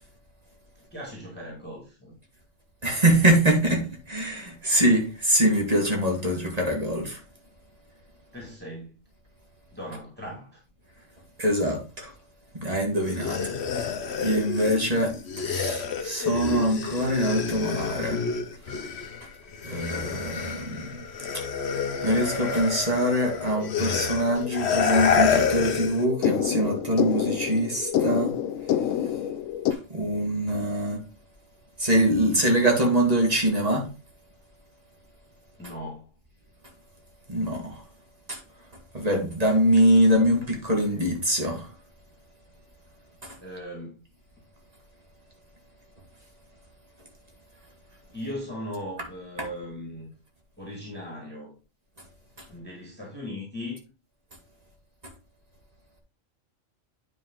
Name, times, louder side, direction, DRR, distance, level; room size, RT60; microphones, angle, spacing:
voice 1, 0.9-2.2 8.3-9.0 9.7-10.6 35.6-36.1 43.4-44.0 48.1-50.1 50.6-51.5 52.5-53.8, left 1 dB, 10° left, 2.1 m, -38 dB
voice 2, 2.8-7.2 11.4-12.1 12.5-13.4 13.7-13.9 14.2-18.2 19.6-21.1 21.3-21.4 22.0-28.3 29.7-31.0 31.8-33.9 37.3-37.8 38.3-38.4 38.9-41.7 43.2-43.4, right 1 dB, 30° right, 2.1 m, -24 dB
sound 1, 13.0-19.2 19.5-26.0, left 6 dB, 60° left, 1.1 m, -28 dB
sound 2, 23.2-29.7, left 10 dB, 80° left, 1.0 m, -29 dB
9.1 x 5.0 x 3.9 m
omnidirectional pair, 1.3 m